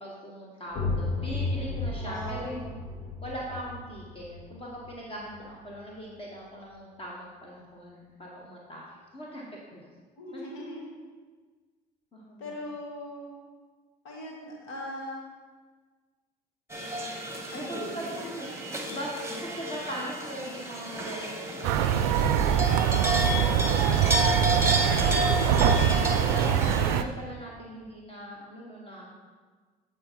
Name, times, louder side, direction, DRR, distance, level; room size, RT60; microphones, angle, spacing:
voice 1, 0.0-2.7 3.2-9.9 10.3-10.4 12.1-12.5 17.5-18.1 18.9-22.9 23.2-29.1, equal, 25° left, -3 dB, 1.5 m, -41 dB
sound 1, 0.7-6.2, left 3 dB, 50° left, 2.5 m, -34 dB
voice 2, 2.0-2.8 10.2-10.9 12.4-13.4 14.0-15.2 17.5-18.5, left 1 dB, 75° left, -2 dB, 1.8 m, -39 dB
sound 2, 16.7-27.0, right 1 dB, 15° right, 1.2 m, -31 dB
sound 3, 21.6-27.0, right 8 dB, 80° right, 0.4 m, -23 dB
8.3 x 4.6 x 4.6 m, 1.4 s
hypercardioid pair, 65°, 20 cm